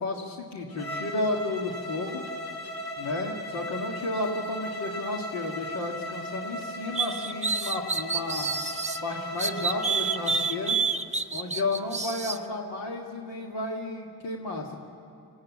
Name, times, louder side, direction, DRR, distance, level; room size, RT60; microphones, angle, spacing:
voice 1, 0.0-2.2 3.0-8.5 9.0-10.8 11.3-14.7, left 2 dB, 90° left, 0 dB, 1.8 m, -32 dB
Bowed string instrument, 0.7-10.8, equal, 60° left, 2.3 m, -37 dB
sound 1, 6.9-9.0 9.4-12.4, right 5 dB, 15° right, 0.8 m, -28 dB
20.5 x 16.0 x 8.5 m, 2.9 s
supercardioid pair, 55°, 42 cm